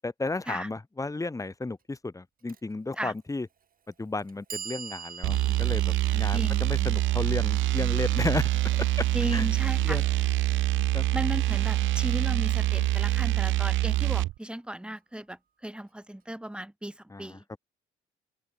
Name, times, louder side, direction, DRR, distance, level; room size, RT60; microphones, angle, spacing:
voice 1, 0.0-3.5 4.0-8.5 8.8-9.1 9.3-9.5 9.8-10.0 10.9-11.1 17.1-17.6, left 3 dB, 15° left, 1.9 m, -33 dB
Clock, 2.5-2.6 3.6-3.7 4.2-10.2, right 7 dB, 45° right, 2.7 m, -46 dB
sound 1, 5.2-14.3, right 16 dB, 75° right, 0.5 m, -25 dB
Acoustic guitar, 5.3-13.3, left 14 dB, 85° left, 4.7 m, -47 dB
voice 2, 6.3-6.7 9.1-10.0 11.1-17.4, right 1 dB, 5° right, 3.1 m, -35 dB
open air
cardioid pair, 90°, 20 cm